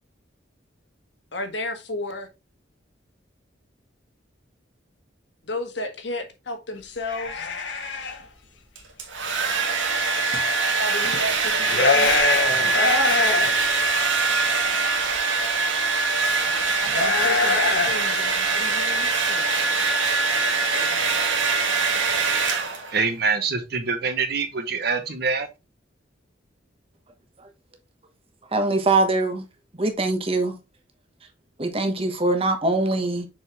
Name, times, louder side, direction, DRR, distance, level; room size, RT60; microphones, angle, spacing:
voice 1, 1.3-2.3 5.4-7.5 10.8-13.2 16.9-19.8 20.7-21.2, left 1 dB, 70° left, 1.5 m, -33 dB
sound 1, 7.0-8.2 10.3-10.4 10.9-11.2 11.5-13.5 13.9-14.0 15.1-15.2 16.4-18.2, left 4 dB, 90° left, 1.6 m, -24 dB
Domestic sounds home sounds, 8.8-23.0, right 4 dB, 90° right, 1.6 m, -23 dB
voice 2, 22.9-25.5, right 4 dB, 60° right, 1.2 m, -25 dB
voice 3, 28.5-29.4 29.8-30.6 31.6-33.3, right 2 dB, 30° right, 1.2 m, -22 dB
6.3 x 4.7 x 3.5 m
head